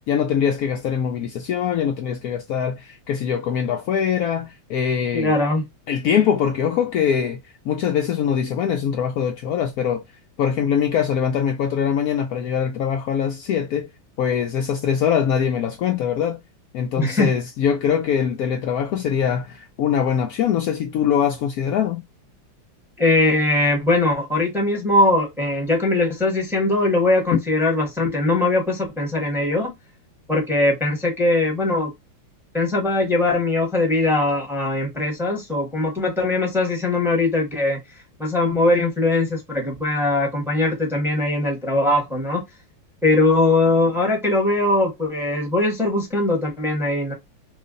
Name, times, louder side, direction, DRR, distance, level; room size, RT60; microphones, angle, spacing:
voice 1, 0.1-5.3 5.9-7.4 7.6-10.0 10.4-13.9 14.2-16.4 16.7-22.0 27.3-27.4, left 8 dB, 90° left, 0.8 m, -22 dB
voice 2, 5.1-5.6 17.0-17.3 23.0-29.7 30.3-31.9 32.5-37.8 38.2-42.4 43.0-47.1, left 2 dB, ahead, 0.7 m, -20 dB
3.1 x 2.4 x 3.8 m
omnidirectional pair, 2.1 m